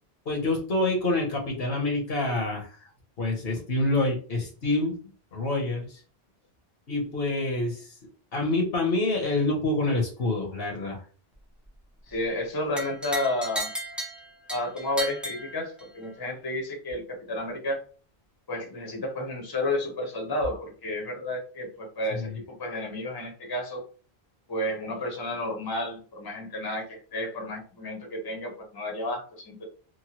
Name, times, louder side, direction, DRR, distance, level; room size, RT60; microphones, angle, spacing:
voice 1, 0.3-2.7 3.2-6.0 6.9-7.9 8.3-11.0 22.1-22.4, left 2 dB, 65° left, 1 dB, 1.1 m, -27 dB
voice 2, 12.1-13.7 14.5-17.8 18.5-22.3 22.6-23.8 24.5-29.6, left 1 dB, 25° left, 1 dB, 0.7 m, -31 dB
sound 1, 12.8-16.1, right 1 dB, ahead, 0.3 m, -35 dB
3.0 x 2.2 x 2.9 m, 0.39 s
omnidirectional pair, 1.1 m